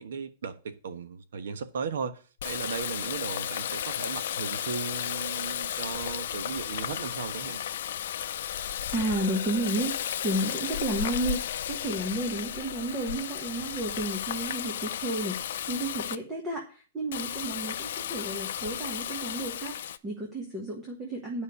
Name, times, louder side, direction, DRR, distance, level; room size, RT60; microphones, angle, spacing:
voice 1, 0.0-7.6, right 6 dB, 80° right, 1.3 m, -36 dB
Water tap faucet, 2.4-16.2 17.1-20.0, left 10 dB, 55° left, 0.6 m, -34 dB
voice 2, 8.9-21.4, right 2 dB, 10° right, 1.4 m, -32 dB
10.0 x 5.4 x 8.2 m
supercardioid pair, 180°, 0 cm